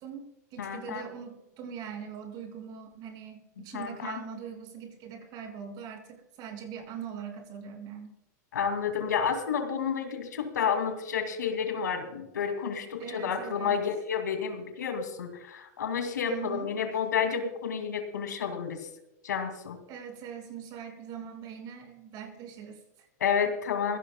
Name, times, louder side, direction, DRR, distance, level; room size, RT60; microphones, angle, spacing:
voice 1, 0.0-8.1 13.0-13.8 16.2-16.7 19.9-23.1, right 8 dB, 45° right, 4 dB, 5.2 m, -42 dB
voice 2, 0.6-1.1 3.6-4.2 8.5-18.9 19.2-19.8 23.2-24.0, left 7 dB, 90° left, 7 dB, 2.4 m, -30 dB
24.0 x 17.5 x 2.2 m, 0.87 s
hypercardioid pair, 110°, 9 cm